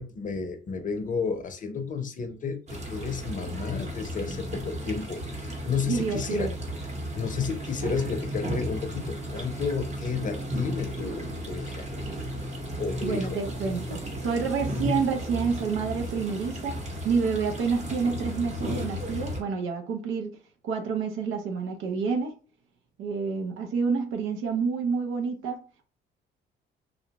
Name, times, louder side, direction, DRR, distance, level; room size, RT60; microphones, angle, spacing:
voice 1, 0.0-6.5 7.1-11.9 12.4-12.5 12.8-13.4, left 5 dB, 40° left, 0.6 m, -32 dB
sound 1, 2.7-19.4, equal, 35° right, 0.9 m, -34 dB
voice 2, 5.9-6.5 13.0-16.8 17.0-20.3 20.6-22.3 23.0-25.9, right 5 dB, 85° right, 0.6 m, -28 dB
2.6 x 2.1 x 2.8 m
cardioid pair, 90°, 20 cm